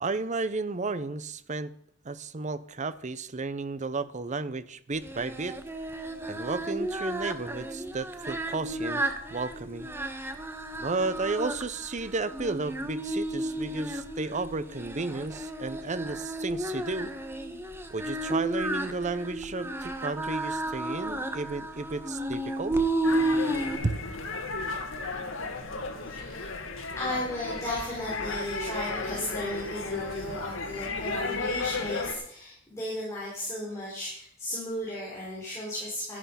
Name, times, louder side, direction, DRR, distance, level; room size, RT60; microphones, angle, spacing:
voice 1, 0.0-1.7 2.0-5.6 6.3-9.0 9.3-9.9 10.8-17.1 17.9-22.8 23.8-24.0, right 3 dB, 40° right, 15 dB, 0.7 m, -33 dB
Singing, 5.0-23.8, right 1 dB, 10° right, 1.2 m, -33 dB
sound 1, 23.0-32.1, left 3 dB, 80° left, 2.0 m, -34 dB
voice 2, 25.9-26.6 27.0-36.2, left 1 dB, 15° left, -7 dB, 4.9 m, -35 dB
12.5 x 11.0 x 5.7 m, 0.66 s
head